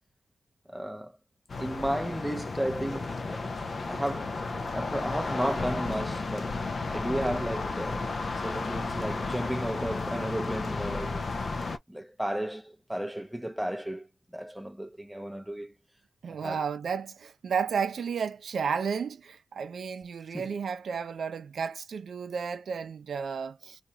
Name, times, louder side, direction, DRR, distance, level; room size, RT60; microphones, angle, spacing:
voice 1, 0.7-1.2 1.6-3.5 3.9-4.4 4.8-11.2 11.9-14.1 14.3-15.7 16.3-16.6 20.3-20.6, right 1 dB, 5° right, 0.6 m, -34 dB
sound 1, 1.5-11.8, left 3 dB, 45° left, 0.5 m, -33 dB
voice 2, 16.2-23.8, right 6 dB, 75° right, 0.5 m, -32 dB
2.9 x 2.3 x 3.9 m
wide cardioid pair, 130°, 0 cm